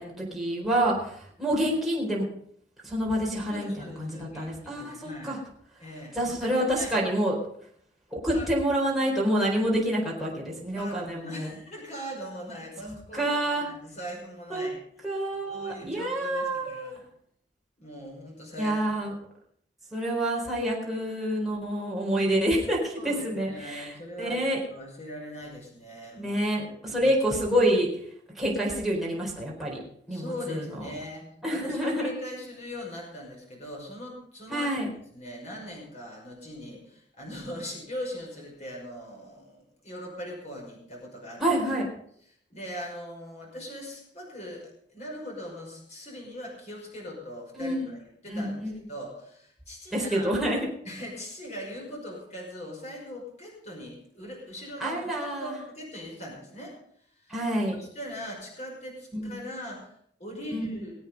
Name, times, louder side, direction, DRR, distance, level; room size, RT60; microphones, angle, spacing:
voice 1, 0.0-2.2 2.8-5.4 6.1-7.3 8.1-11.5 12.9-13.7 14.5-14.7 15.0-16.9 18.6-19.1 19.9-23.9 24.2-24.6 26.2-27.9 28.3-29.8 30.1-30.9 31.4-32.1 34.5-34.9 41.4-41.9 47.5-47.9 48.3-48.7 49.9-50.7 54.8-55.5 57.3-57.8 59.1-59.3 60.5-60.7, right 1 dB, ahead, -4 dB, 4.2 m, -27 dB
voice 2, 3.5-5.4 5.8-7.1 8.3-8.4 10.2-10.4 10.7-14.8 15.5-17.0 17.8-18.7 23.0-26.4 26.8-27.1 30.1-34.7 35.1-41.4 42.5-48.0 48.2-48.6 48.9-50.3 50.8-55.0 55.3-56.7 57.2-57.3 57.7-59.9 60.2-60.9, equal, 40° left, -1 dB, 5.6 m, -40 dB
21.5 x 8.4 x 5.4 m, 0.65 s
head